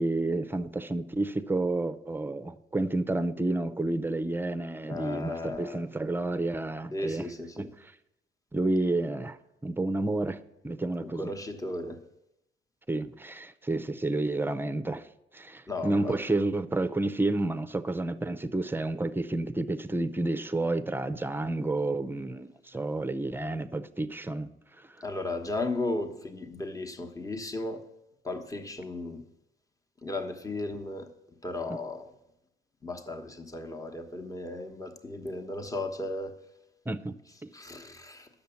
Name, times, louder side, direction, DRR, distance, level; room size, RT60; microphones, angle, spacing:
voice 1, 0.0-7.3 7.6-7.9 8.5-10.4 10.6-11.3 12.9-15.1 15.3-24.5 24.8-24.9 36.9-37.1, right 2 dB, 10° right, 0.6 m, -30 dB
voice 2, 4.8-5.8 6.9-7.7 11.0-12.0 15.7-16.2 25.0-27.8 28.2-29.2 30.0-31.1 31.4-32.1 32.8-36.4 37.5-38.3, left 2 dB, 15° left, 1.2 m, -35 dB
10.0 x 7.0 x 7.1 m
cardioid pair, 90°, 20 cm